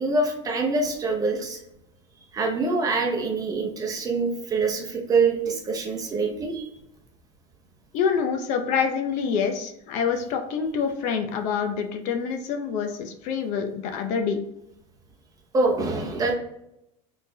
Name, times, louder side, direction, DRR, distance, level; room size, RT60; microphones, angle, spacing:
voice 1, 0.0-1.6 2.3-6.7 15.5-16.4, right 3 dB, 20° right, 1 dB, 0.8 m, -25 dB
voice 2, 7.9-14.4, left 6 dB, 50° left, 5 dB, 0.6 m, -26 dB
4.2 x 3.3 x 2.7 m, 0.82 s
supercardioid pair, 145°, 16 cm